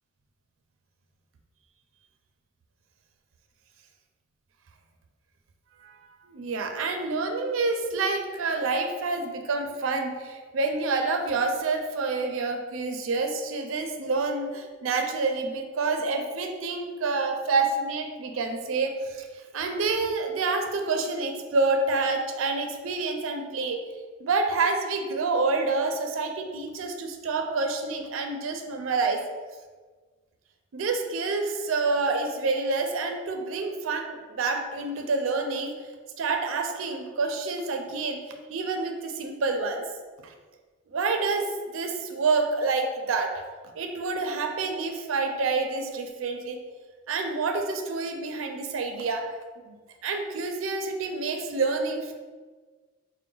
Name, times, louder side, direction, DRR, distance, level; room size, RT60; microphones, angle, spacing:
voice 1, 6.3-19.3 19.5-23.8 24.2-29.2 30.7-35.7 36.2-38.2 38.5-39.8 40.9-43.3 43.8-46.6 47.1-49.3 49.7-49.8 50.0-52.1, right 3 dB, 85° right, 5 dB, 0.4 m, -28 dB
4.6 x 2.1 x 3.8 m, 1.4 s
head